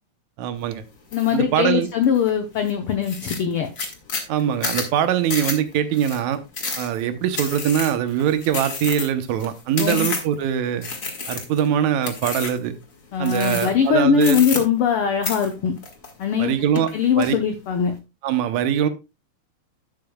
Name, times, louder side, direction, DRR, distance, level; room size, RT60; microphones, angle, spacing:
voice 1, 0.4-0.8 1.3-1.9 4.3-6.4 6.8-10.9 11.3-12.7 13.2-14.4 16.4-16.9 17.2-17.4 18.2-18.9, right 9 dB, 75° right, 11 dB, 2.2 m, -22 dB
voice 2, 1.1-3.7 9.8-10.1 13.1-15.7 16.2-16.5 16.9-17.9, left 7 dB, 65° left, 5 dB, 1.5 m, -21 dB
sound 1, 1.1-1.4 1.8-2.3 2.7-2.8 3.0-10.4 10.8-11.7 12.0-12.7 13.2-13.9 14.2-15.0 15.2-16.4 16.8-17.3, left 4 dB, 35° left, 1.6 m, -30 dB
11.5 x 8.8 x 2.3 m, 0.25 s
omnidirectional pair, 3.4 m